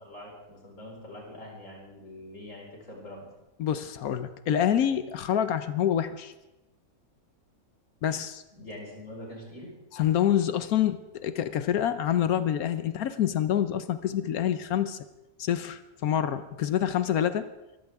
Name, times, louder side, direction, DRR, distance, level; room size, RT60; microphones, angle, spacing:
voice 1, 0.0-3.3 8.5-9.7, left 1 dB, 60° left, -2 dB, 5.3 m, -44 dB
voice 2, 3.6-6.3 8.0-8.4 9.9-15.0 15.4-17.5, left 10 dB, 85° left, 11 dB, 1.3 m, -27 dB
24.5 x 15.0 x 3.6 m, 1.0 s
omnidirectional pair, 1.5 m